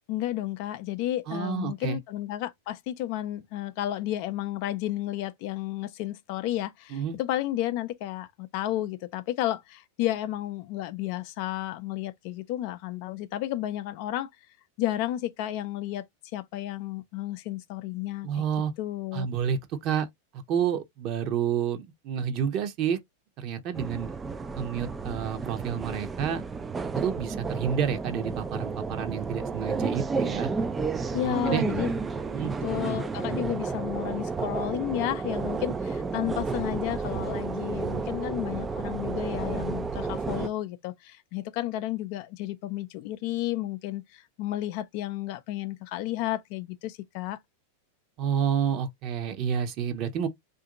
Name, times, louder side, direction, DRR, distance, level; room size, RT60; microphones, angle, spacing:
voice 1, 0.1-14.3 14.8-16.0 16.3-18.3 18.8-19.3 31.1-31.9 32.6-47.4, left 14 dB, 55° left, 0.4 m, -32 dB
voice 2, 1.3-2.0 6.9-7.2 18.2-18.7 19.1-20.1 20.3-23.0 23.4-24.1 24.5-26.4 26.9-30.5 31.1-31.6 32.3-32.5 48.2-50.3, right 8 dB, 45° right, 0.8 m, -29 dB
sound 1, 23.7-40.5, right 4 dB, 20° right, 0.3 m, -31 dB
2.8 x 2.6 x 3.7 m
hypercardioid pair, 100°, 0 cm